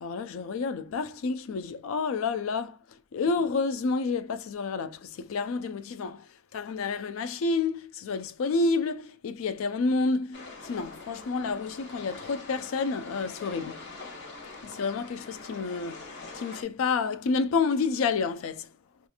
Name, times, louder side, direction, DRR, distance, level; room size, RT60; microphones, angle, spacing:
voice 1, 0.0-13.9 14.6-18.7, left 4 dB, 75° left, 0.3 m, -29 dB
sound 1, 10.3-16.6, left 3 dB, 55° left, 0.9 m, -44 dB
2.8 x 2.4 x 2.4 m
head